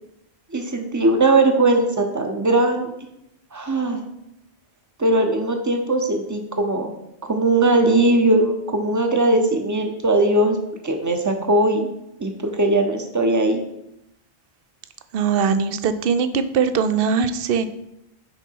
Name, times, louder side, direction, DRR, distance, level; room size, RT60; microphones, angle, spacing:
voice 1, 0.5-2.9 3.5-4.0 5.0-6.9 7.2-10.6 10.8-11.9 12.2-13.6, right 2 dB, 20° right, 4 dB, 0.7 m, -19 dB
voice 2, 15.1-17.7, right 6 dB, 65° right, 11 dB, 0.8 m, -21 dB
9.7 x 4.0 x 4.6 m, 0.85 s
omnidirectional pair, 1.1 m